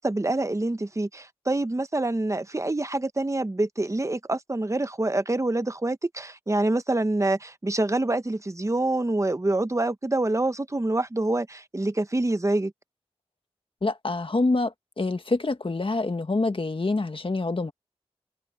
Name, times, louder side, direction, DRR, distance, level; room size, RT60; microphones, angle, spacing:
voice 1, 0.0-12.7, right 2 dB, 25° right, 1.0 m, -26 dB
voice 2, 13.8-17.7, left 3 dB, 50° left, 1.6 m, -26 dB
wide cardioid pair, 60°, 11 cm